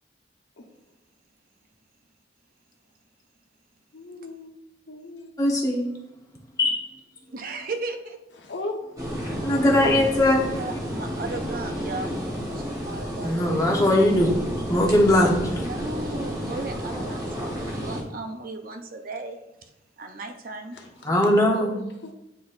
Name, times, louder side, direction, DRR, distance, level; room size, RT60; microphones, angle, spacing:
voice 1, 3.9-5.3 8.4-8.8 20.7-21.1 21.5-22.1, left 2 dB, 80° left, 1 dB, 1.1 m, -38 dB
voice 2, 5.4-5.9 6.6-6.7 9.4-10.4 13.2-14.3 14.7-15.6 21.0-21.8, left 1 dB, 20° left, -1 dB, 1.0 m, -20 dB
voice 3, 7.3-8.2 9.6-10.0 10.5-13.7 15.5-19.4 20.0-20.8, right 3 dB, 50° right, 5 dB, 0.6 m, -36 dB
sound 1, 9.0-18.0, equal, 20° right, 1.2 m, -31 dB
9.0 x 4.1 x 2.6 m, 0.88 s
head